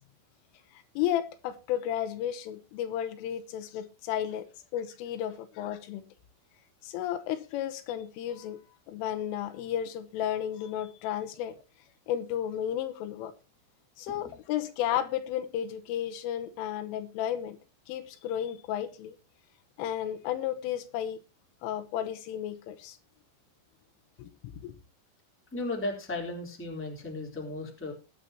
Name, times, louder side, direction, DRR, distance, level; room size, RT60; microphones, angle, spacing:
voice 1, 0.7-4.5 4.7-6.0 6.8-8.6 8.9-11.6 12.1-13.3 14.0-17.6 17.9-19.2 19.8-21.2 21.6-23.0 24.2-24.3 24.6-24.7, left 10 dB, 80° left, 3.4 m, -33 dB
voice 2, 25.5-27.9, left 2 dB, 5° left, 2.3 m, -35 dB
19.5 x 9.2 x 2.9 m
omnidirectional pair, 5.9 m